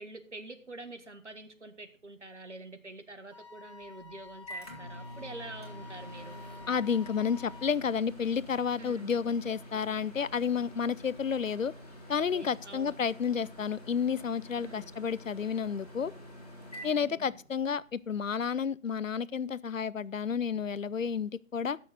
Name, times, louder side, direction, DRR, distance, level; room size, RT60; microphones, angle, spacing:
voice 1, 0.0-6.4 8.8-9.1 12.2-13.0 14.6-14.9 17.0-17.4, right 2 dB, 60° right, 1.5 m, -46 dB
Wind instrument woodwind instrument, 3.3-7.8, left 5 dB, 35° right, 1.2 m, -50 dB
Microwave oven, 3.8-17.8, equal, 30° left, 2.1 m, -48 dB
voice 2, 6.7-11.7 12.1-16.1 16.8-21.8, left 6 dB, 75° left, 0.5 m, -31 dB
15.0 x 6.5 x 4.0 m
figure-of-eight pair, 165°, 39 cm